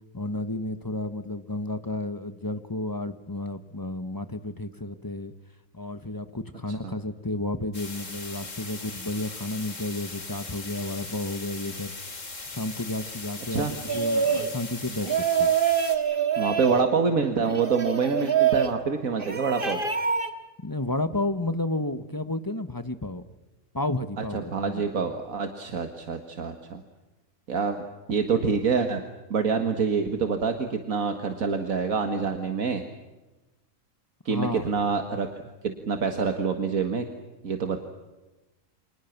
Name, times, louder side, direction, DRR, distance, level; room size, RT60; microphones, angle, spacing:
voice 1, 0.1-5.3 5.7-11.9 12.5-15.5 20.6-23.3 23.7-24.8 34.3-34.7, left 2 dB, 15° left, 10 dB, 1.3 m, -32 dB
sound 1, 7.7-16.0, left 3 dB, 65° left, 3.2 m, -39 dB
sound 2, 13.9-14.5 15.0-16.9 17.4-18.7 19.2-20.3, right 7 dB, 40° right, 2.2 m, -25 dB
voice 2, 16.4-19.8 24.3-26.8 27.5-27.8 28.1-29.0 29.3-32.8 34.3-35.3 35.6-37.1 37.4-37.8, right 5 dB, 75° right, 6 dB, 2.2 m, -26 dB
30.0 x 25.5 x 6.0 m, 1.1 s
omnidirectional pair, 1.4 m